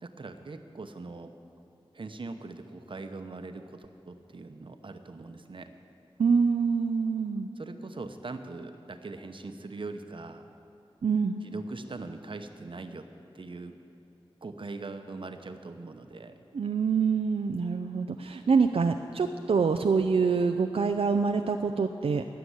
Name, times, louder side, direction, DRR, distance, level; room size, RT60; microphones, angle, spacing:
voice 1, 0.0-1.3 1.9-5.7 7.6-10.4 11.4-13.0 13.3-13.7 14.4-16.3, right 3 dB, 60° right, 7 dB, 0.9 m, -41 dB
voice 2, 6.2-7.5 11.0-11.4 16.5-22.2, right 5 dB, 85° right, 5 dB, 0.5 m, -25 dB
16.5 x 6.9 x 9.6 m, 2.9 s
wide cardioid pair, 80°, 10 cm